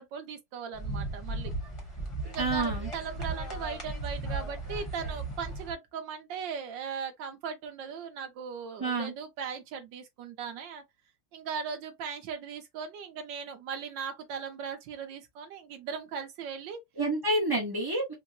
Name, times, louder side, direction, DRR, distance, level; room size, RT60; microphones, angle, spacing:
voice 1, 0.0-1.5 2.2-10.8 11.3-16.8, right 6 dB, 65° right, 1.5 m, -38 dB
sound 1, 0.7-5.7, right 2 dB, 20° left, 0.8 m, -36 dB
voice 2, 2.4-2.9 8.8-9.1 17.0-18.1, right 2 dB, 30° right, 0.4 m, -28 dB
4.5 x 2.2 x 2.7 m
omnidirectional pair, 2.3 m